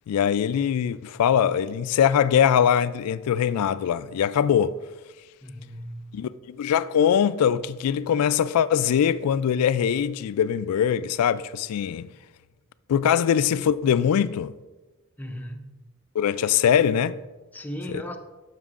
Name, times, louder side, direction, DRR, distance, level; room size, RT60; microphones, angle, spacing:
voice 1, 0.1-4.8 6.1-12.1 12.9-14.5 16.2-17.2 17.9-18.0, left 8 dB, 85° left, 0.3 m, -22 dB
voice 2, 5.4-6.3 15.2-15.7 17.5-18.2, equal, 10° left, 0.5 m, -36 dB
12.5 x 5.9 x 2.4 m
head